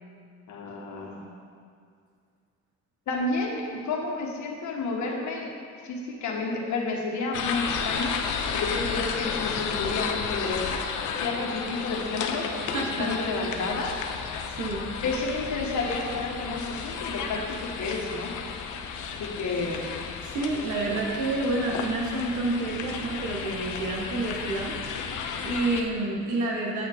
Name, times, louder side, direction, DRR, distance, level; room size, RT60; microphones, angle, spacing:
voice 1, 0.5-1.2 3.1-5.5 5.8-8.1 8.5-10.8 11.2-12.5 13.0-13.9 15.0-18.3 19.2-19.9, left 3 dB, 70° left, 0 dB, 1.4 m, -30 dB
sound 1, 7.3-25.8, left 6 dB, 85° left, 0.7 m, -33 dB
voice 2, 12.6-13.1 14.6-14.8 20.2-24.7 25.4-26.9, right 2 dB, 70° right, -1 dB, 1.6 m, -29 dB
8.3 x 5.7 x 4.5 m, 2.2 s
cardioid pair, 90°, 30 cm